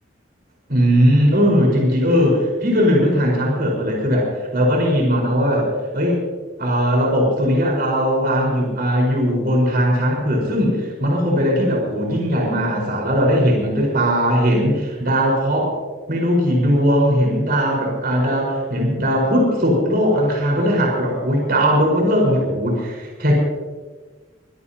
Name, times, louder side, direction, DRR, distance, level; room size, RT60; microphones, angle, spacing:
voice 1, 0.7-6.2 6.6-15.7 16.1-23.3, equal, 55° right, -2 dB, 4.8 m, -19 dB
23.0 x 17.0 x 2.9 m, 1.3 s
head